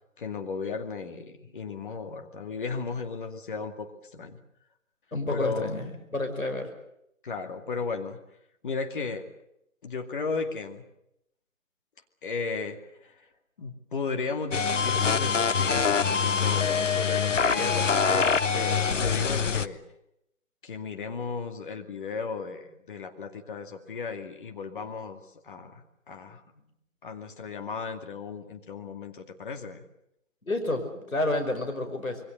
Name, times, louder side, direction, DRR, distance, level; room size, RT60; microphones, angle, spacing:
voice 1, 0.2-4.4 5.3-5.8 7.2-8.2 8.6-9.3 9.8-10.8 12.2-13.3 13.6-19.8 20.6-26.4 27.0-29.8, left 4 dB, 40° left, 5 dB, 2.4 m, -35 dB
voice 2, 5.1-6.7 30.5-32.2, left 2 dB, 90° left, 5 dB, 5.4 m, -29 dB
sound 1, 14.5-19.7, left 6 dB, 65° left, 1.2 m, -24 dB
27.0 x 22.5 x 6.7 m, 0.78 s
figure-of-eight pair, 150°, 40 cm